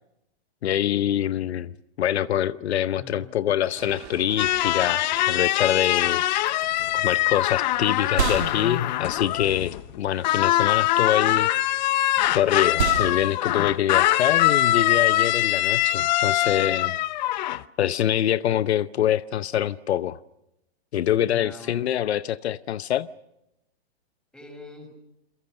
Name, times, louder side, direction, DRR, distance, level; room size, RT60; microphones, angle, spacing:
voice 1, 0.6-11.9 12.3-17.0 17.8-20.2 20.9-23.1, left 11 dB, 75° left, 16 dB, 0.8 m, -25 dB
voice 2, 2.9-3.3 21.3-21.9 24.3-24.9, left 2 dB, 5° left, 4 dB, 5.8 m, -44 dB
sound 1, 3.8-9.2, right 13 dB, 35° right, 2.4 m, -48 dB
sound 2, 4.4-10.0 10.2-17.6, left 14 dB, 40° left, 0.8 m, -23 dB
sound 3, 6.9-16.4, right 7 dB, 90° right, 3.1 m, -34 dB
29.0 x 23.0 x 6.6 m, 0.86 s
hypercardioid pair, 155°, 33 cm